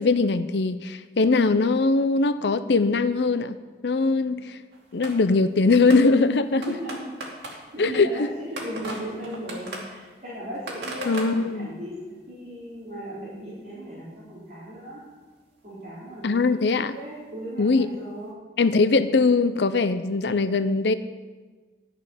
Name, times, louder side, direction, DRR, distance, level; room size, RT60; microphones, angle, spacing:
voice 1, 0.0-3.6 3.8-4.6 4.9-6.7 7.8-8.3 11.1-11.7 16.2-17.0 17.6-17.9 18.6-20.9, left 3 dB, 75° left, 12 dB, 0.6 m, -21 dB
sound 1, 4.7-5.4 5.9-12.0 12.9-13.0 13.2-13.3 13.8-13.9 15.2-15.3 15.8-15.9 17.3-17.4 18.3-18.4, right 1 dB, 85° right, 2.5 m, -39 dB
voice 2, 6.6-7.1 7.7-15.0 15.6-16.5 16.9-18.3, right 1 dB, 45° right, -10 dB, 4.3 m, -37 dB
13.0 x 6.4 x 8.9 m, 1.3 s
head